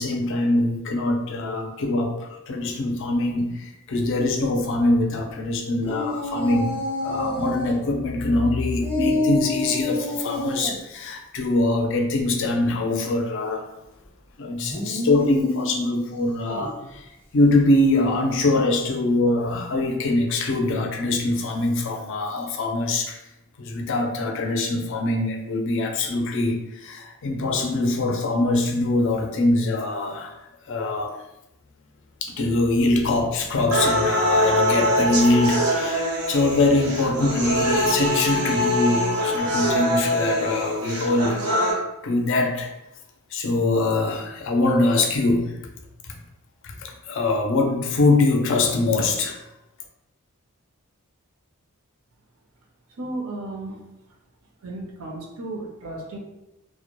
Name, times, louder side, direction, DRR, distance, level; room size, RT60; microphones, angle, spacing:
voice 1, 0.0-6.8 7.0-13.7 14.4-23.2 23.6-30.4 30.7-31.1 32.2-41.4 41.7-42.7 43.3-45.6 46.6-49.4, left 2 dB, 55° left, 2 dB, 0.4 m, -23 dB
sound 1, 5.8-7.8 8.8-10.8 14.6-16.8, left 1 dB, 10° left, 0.6 m, -28 dB
sound 2, 33.7-41.7, equal, 85° right, 0.8 m, -23 dB
voice 2, 53.0-53.9 54.6-56.2, right 2 dB, 70° right, 0 dB, 0.5 m, -34 dB
2.1 x 2.0 x 2.9 m, 0.90 s
head